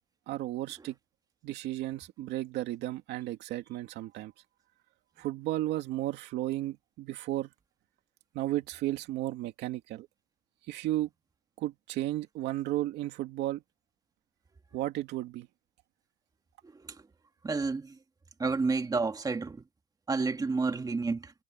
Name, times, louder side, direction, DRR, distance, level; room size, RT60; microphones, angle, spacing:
voice 1, 0.3-1.0 1.4-4.3 5.2-7.5 8.3-10.1 10.7-11.1 11.6-13.6 14.7-15.5, right 15 dB, 85° right, 2.5 m, -34 dB
voice 2, 17.4-17.9 18.4-19.6 20.1-21.3, right 4 dB, 20° right, 2.1 m, -30 dB
cardioid pair, 110°, 17 cm